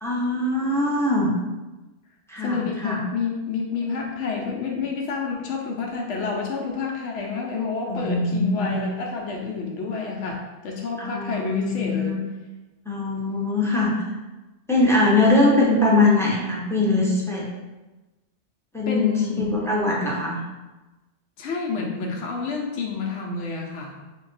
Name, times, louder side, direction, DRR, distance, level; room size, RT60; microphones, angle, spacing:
voice 1, 0.0-1.3 2.3-3.0 7.9-8.8 11.0-12.2 12.9-14.1 14.7-17.5 18.7-19.1 19.4-20.4, left 2 dB, 5° left, -5 dB, 0.5 m, -22 dB
voice 2, 2.4-12.2 18.9-19.5 21.4-24.0, left 5 dB, 80° left, 0 dB, 0.9 m, -29 dB
3.6 x 2.3 x 3.8 m, 1.1 s
omnidirectional pair, 1.2 m